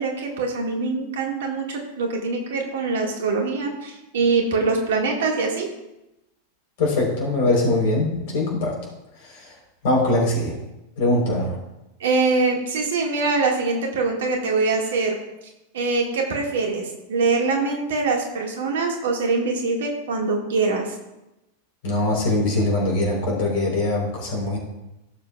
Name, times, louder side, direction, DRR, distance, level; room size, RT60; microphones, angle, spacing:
voice 1, 0.0-5.7 12.0-15.1 15.7-21.0, right 3 dB, 60° right, 1 dB, 1.8 m, -23 dB
voice 2, 6.8-8.8 9.2-9.5 9.8-10.5 11.0-11.6 21.8-24.6, left 2 dB, 50° left, -1 dB, 3.8 m, -22 dB
16.0 x 7.1 x 2.4 m, 0.93 s
figure-of-eight pair, 90°, 0 cm